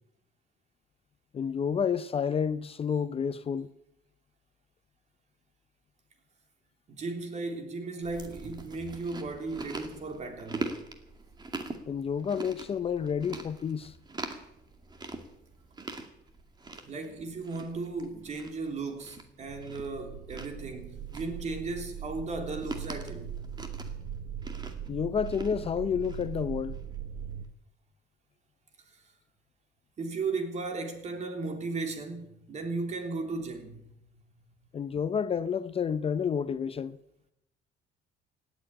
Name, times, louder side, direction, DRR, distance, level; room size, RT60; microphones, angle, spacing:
voice 1, 1.3-3.7 11.9-13.9 24.9-26.8 34.7-37.0, left 7 dB, 35° left, 0.6 m, -30 dB
voice 2, 6.9-10.7 16.8-23.4 28.9-29.0 30.0-33.8, right 3 dB, 45° right, 3.3 m, -36 dB
Chewing mastication, 8.0-27.0, right 3 dB, 25° right, 2.3 m, -43 dB
sound 1, 19.5-27.5, right 8 dB, 65° right, 1.2 m, -40 dB
17.5 x 8.2 x 9.8 m
cardioid pair, 110°, 17 cm